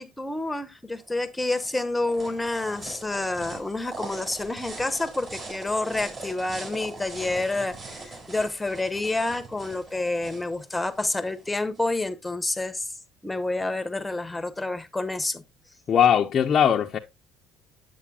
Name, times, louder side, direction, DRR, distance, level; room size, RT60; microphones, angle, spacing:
voice 1, 0.0-12.9 13.2-15.4, left 2 dB, 10° left, 1.0 m, -29 dB
sound 1, 1.0-11.8, right 3 dB, 40° right, 5.7 m, -41 dB
voice 2, 15.9-17.0, left 8 dB, 45° left, 0.6 m, -20 dB
8.3 x 7.9 x 2.3 m
supercardioid pair, 85°, 0 cm